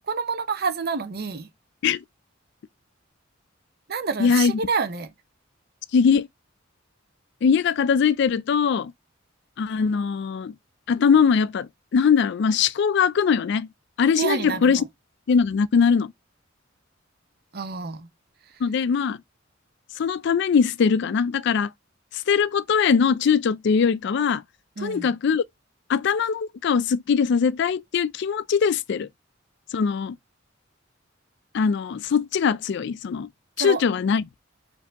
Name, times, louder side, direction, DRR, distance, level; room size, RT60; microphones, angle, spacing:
voice 1, 0.0-1.5 3.9-5.1 14.2-14.9 17.5-18.1 24.8-25.1 33.6-33.8, right 5 dB, 50° right, 0.7 m, -28 dB
voice 2, 4.2-4.6 5.9-6.3 7.4-8.9 9.6-10.5 10.9-13.7 14.0-14.8 15.3-16.1 18.6-19.2 20.0-21.7 22.1-24.4 24.8-25.4 25.9-29.1 29.7-30.2 31.5-33.3 33.6-34.2, left 6 dB, 60° left, 0.3 m, -21 dB
4.5 x 2.7 x 3.4 m
head